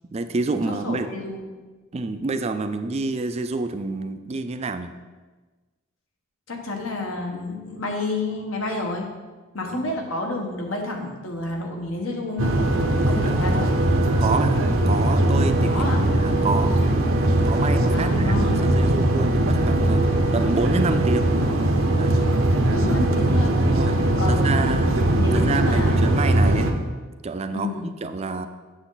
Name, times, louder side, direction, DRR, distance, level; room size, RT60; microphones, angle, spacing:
voice 1, 0.1-1.1 1.9-4.9 9.7-10.0 13.1-13.6 14.2-16.8 17.4-21.4 22.0-22.3 23.7-23.9 24.3-24.9 25.3-26.7 27.2-28.5, right 3 dB, 30° right, 9 dB, 0.4 m, -28 dB
voice 2, 0.8-1.4 6.5-9.1 9.5-12.5 13.0-13.7 15.7-16.1 17.9-18.7 22.7-23.6 24.2-24.8 25.1-26.0 27.5-27.9, left 2 dB, 75° left, 1 dB, 1.4 m, -29 dB
sound 1, 12.4-26.7, right 1 dB, 70° right, 0.8 m, -20 dB
8.1 x 6.6 x 4.0 m, 1.3 s
head